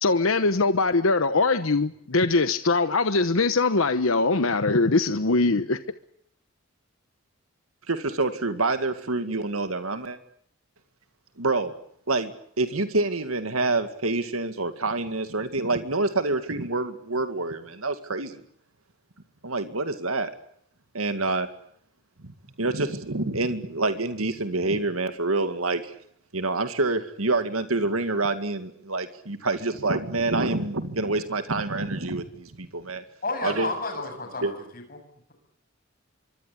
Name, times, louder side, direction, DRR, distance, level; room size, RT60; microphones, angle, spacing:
voice 1, 0.0-5.8, left 3 dB, 80° left, 11 dB, 1.1 m, -22 dB
voice 2, 7.9-10.2 11.4-11.7 12.1-18.4 19.4-20.3 20.9-21.5 22.2-22.3 22.6-25.9 26.3-33.0 33.4-33.7 34.4-34.5, right 3 dB, 90° right, 9 dB, 2.2 m, -27 dB
voice 3, 33.2-35.0, left 3 dB, 45° left, 6 dB, 7.6 m, -32 dB
25.0 x 24.0 x 8.5 m, 0.68 s
head